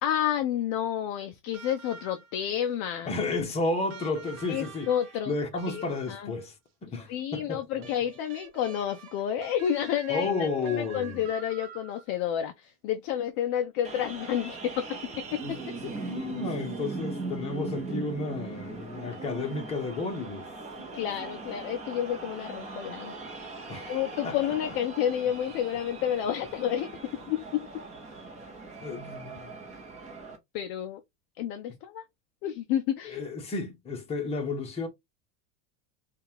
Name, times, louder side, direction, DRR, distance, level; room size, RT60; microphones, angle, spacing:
voice 1, 0.0-3.1 4.5-5.3 5.7-6.3 7.1-15.9 20.9-23.2 23.9-26.9 27.3-27.7 30.5-31.0 31.4-32.0 32.4-33.2, left 10 dB, 35° left, 0.4 m, -30 dB
sound 1, 1.5-2.5 3.9-6.5 7.8-12.3 13.6-13.7, right 6 dB, 40° right, 1.2 m, -46 dB
voice 2, 3.0-4.9 5.3-6.5 6.8-7.9 10.1-11.2 16.1-20.5 23.7-23.9 24.2-24.7 28.8-29.5 33.0-34.9, left 3 dB, 15° left, 0.9 m, -32 dB
sound 2, 13.8-30.4, right 3 dB, 20° right, 1.0 m, -40 dB
5.3 x 2.5 x 2.8 m
supercardioid pair, 160°, 38 cm